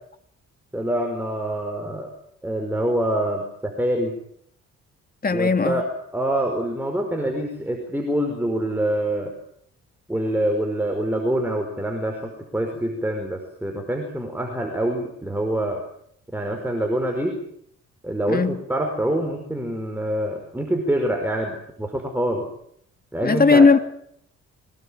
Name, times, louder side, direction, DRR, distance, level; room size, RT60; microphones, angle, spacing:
voice 1, 0.7-2.1 2.4-4.2 5.3-5.8 6.1-9.3 10.1-15.8 16.3-17.4 18.0-22.4 23.1-23.7, right 1 dB, 5° right, 5.2 m, -25 dB
voice 2, 5.2-5.8 18.3-18.6 23.2-23.8, left 4 dB, 30° left, 2.4 m, -17 dB
24.5 x 20.0 x 9.1 m
cardioid pair, 90°, 30 cm